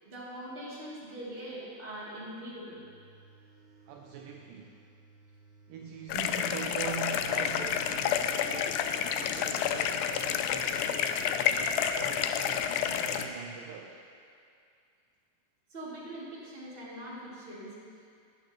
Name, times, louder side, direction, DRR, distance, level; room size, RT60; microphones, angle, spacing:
voice 1, 0.0-2.8 9.2-9.3 15.7-17.7, right 1 dB, 15° right, -8 dB, 2.0 m, -42 dB
sound 1, 2.6-10.2, right 4 dB, 70° right, 3.4 m, -58 dB
voice 2, 3.9-4.8 5.7-8.9 9.2-14.0, right 7 dB, 85° right, 2 dB, 1.9 m, -43 dB
sound 2, 6.1-13.3, left 8 dB, 85° left, 2.0 m, -29 dB
16.5 x 9.6 x 3.0 m, 2.4 s
omnidirectional pair, 4.6 m